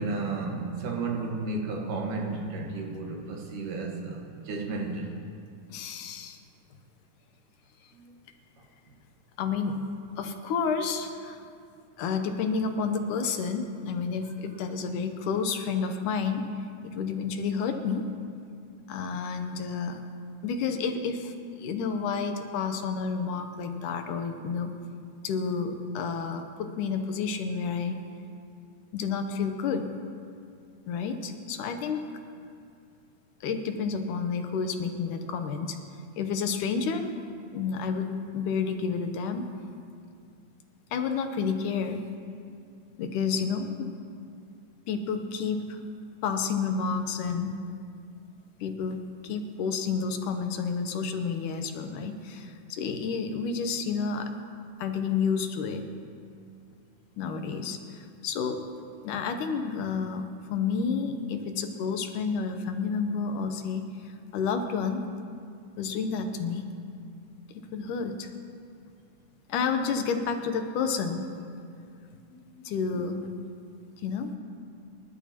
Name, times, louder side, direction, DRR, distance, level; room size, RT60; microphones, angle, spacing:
voice 1, 0.0-5.1 72.3-72.6, right 3 dB, 75° right, 1 dB, 2.9 m, -33 dB
voice 2, 5.7-6.4 9.4-9.8 10.2-11.4 12.0-16.4 16.8-18.1 18.9-20.0 20.4-24.7 25.2-28.0 28.9-29.9 30.9-32.0 33.4-35.8 36.2-37.1 37.5-39.5 40.9-42.0 43.0-43.9 44.9-45.8 46.2-47.6 48.6-54.3 54.8-55.8 57.2-58.6 59.0-60.2 60.5-65.0 65.8-66.7 67.7-68.3 69.5-71.2 72.6-73.2 74.0-74.4, left 5 dB, 75° left, 6 dB, 2.3 m, -30 dB
28.0 x 11.5 x 2.9 m, 2.4 s
omnidirectional pair, 3.8 m